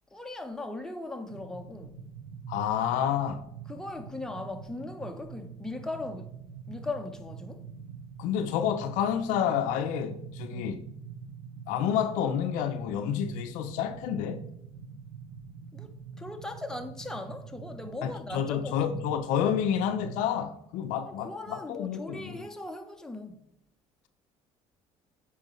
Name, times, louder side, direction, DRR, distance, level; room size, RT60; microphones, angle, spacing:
voice 1, 0.1-2.1 3.7-6.4 6.7-7.7 10.5-10.7 15.7-19.0 21.0-23.4, left 2 dB, 5° left, 0.9 m, -39 dB
sound 1, 1.3-20.3, right 6 dB, 85° right, 0.8 m, -45 dB
voice 2, 2.5-3.5 8.2-10.8 11.7-14.4 18.0-22.4, left 9 dB, 70° left, 0.6 m, -29 dB
8.7 x 4.7 x 3.1 m
supercardioid pair, 75°, 14 cm